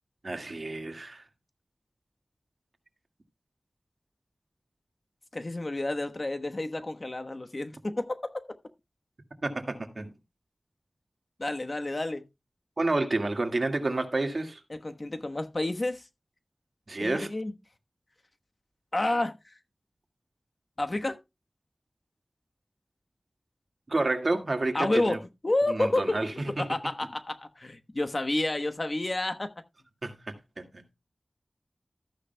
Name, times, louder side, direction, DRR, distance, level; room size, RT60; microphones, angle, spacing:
voice 1, 0.2-1.2 9.4-10.1 12.8-14.6 16.9-17.3 23.9-25.2 25.7-26.6 30.0-30.8, right 2 dB, 60° right, 1.8 m, -30 dB
voice 2, 5.3-8.6 11.4-12.2 14.7-16.0 17.0-17.5 18.9-19.4 20.8-21.2 24.7-25.2 25.4-26.2 26.5-29.5, left 2 dB, 45° left, 1.1 m, -30 dB
14.0 x 9.8 x 2.2 m
wide cardioid pair, 70°, 0 cm